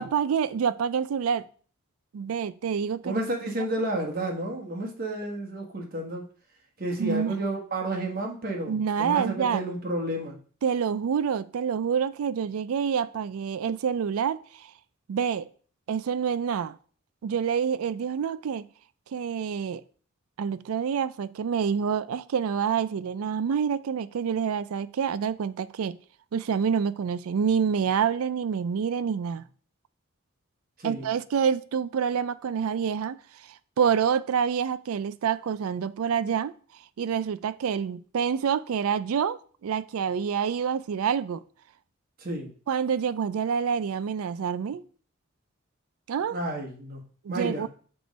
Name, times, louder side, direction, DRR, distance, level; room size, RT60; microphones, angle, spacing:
voice 1, 0.0-1.5 2.1-3.2 7.0-7.4 8.7-9.6 10.6-14.7 15.1-15.5 15.9-16.8 17.2-18.7 19.1-19.8 20.4-25.9 26.3-29.4 30.8-33.2 33.8-36.5 37.0-41.4 42.7-44.8 46.1-46.4 47.2-47.7, right 7 dB, 90° right, 0.4 m, -27 dB
voice 2, 3.0-6.3 6.8-10.4 30.8-31.1 42.2-42.5 46.3-47.7, right 1 dB, 45° right, 1.2 m, -31 dB
6.1 x 3.1 x 5.2 m
head